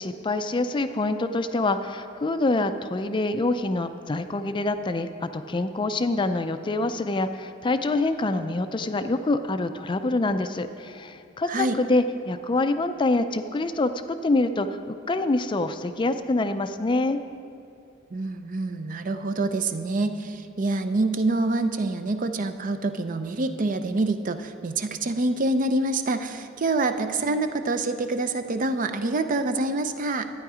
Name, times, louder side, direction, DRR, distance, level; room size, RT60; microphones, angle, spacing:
voice 1, 0.0-17.2, left 2 dB, 25° left, 9 dB, 0.4 m, -26 dB
voice 2, 11.5-11.8 18.1-30.3, right 2 dB, 45° right, 9 dB, 0.5 m, -26 dB
12.0 x 9.5 x 4.9 m, 2.6 s
head